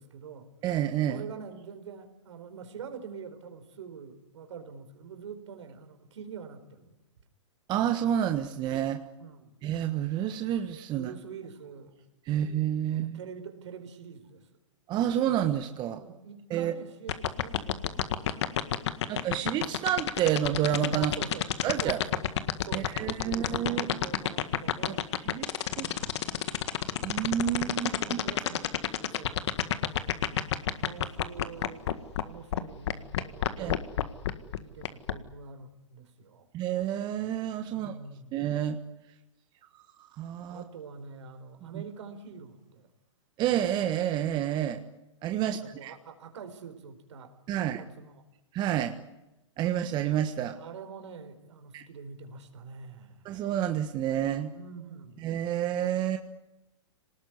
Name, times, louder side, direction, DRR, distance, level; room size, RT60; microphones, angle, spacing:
voice 1, 0.0-0.5 1.0-7.0 9.2-9.6 10.9-12.0 12.3-12.4 12.9-14.5 15.9-19.2 20.9-21.5 21.8-22.3 22.6-25.1 25.8-26.3 27.5-31.9 32.2-33.9 34.6-36.5 37.7-38.4 40.5-42.9 45.4-48.2 50.6-53.3 54.5-55.3, right 6 dB, 70° right, 8 dB, 4.4 m, -46 dB
voice 2, 0.6-1.2 7.7-9.0 9.6-11.1 12.3-13.2 14.9-16.0 16.5-16.7 19.1-21.1 21.6-22.0 22.7-23.8 24.9-25.0 25.3-25.5 25.8-25.9 27.0-28.2 33.6-33.7 36.5-37.9 38.3-38.8 40.2-40.6 43.4-44.8 45.2-45.9 47.5-47.8 48.5-49.0 49.6-50.6 51.7-51.8 53.2-54.5 55.2-56.2, right 11 dB, 30° right, 7 dB, 1.4 m, -29 dB
sound 1, 17.1-32.2 32.5-32.6 32.9-35.1, left 12 dB, 60° left, 1.8 m, -27 dB
26.0 x 19.5 x 9.8 m, 0.94 s
hypercardioid pair, 130°, 16 cm